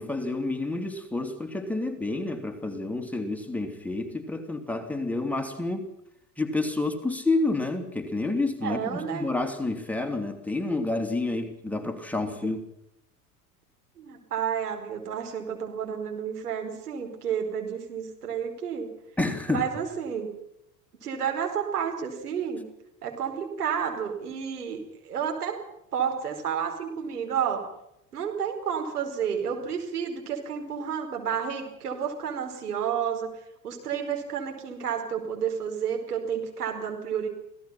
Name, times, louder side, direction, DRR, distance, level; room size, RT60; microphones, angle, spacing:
voice 1, 0.0-5.9 6.4-12.6 19.2-19.6, left 2 dB, 5° left, 4 dB, 3.1 m, -29 dB
voice 2, 8.6-9.3 14.0-18.9 19.5-20.3 21.0-22.6 23.0-25.6 25.9-27.6 28.1-33.3 33.6-37.3, right 7 dB, 75° right, 3 dB, 4.9 m, -31 dB
27.0 x 17.5 x 5.9 m, 0.81 s
figure-of-eight pair, 75°, 46 cm